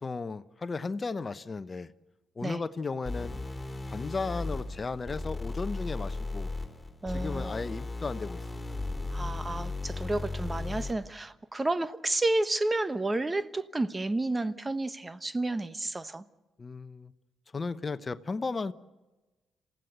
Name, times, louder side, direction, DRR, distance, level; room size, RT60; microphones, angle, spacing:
voice 1, 0.0-1.9 2.4-3.3 3.9-6.5 7.1-8.6 16.6-17.1 17.5-18.7, left 4 dB, 35° left, 13 dB, 0.9 m, -35 dB
sound 1, 3.1-11.1, left 3 dB, 15° left, 4.6 m, -36 dB
voice 2, 7.0-7.6 9.1-16.2, right 2 dB, 25° right, 13 dB, 1.2 m, -31 dB
28.0 x 16.0 x 8.0 m, 1.1 s
hypercardioid pair, 45°, 0 cm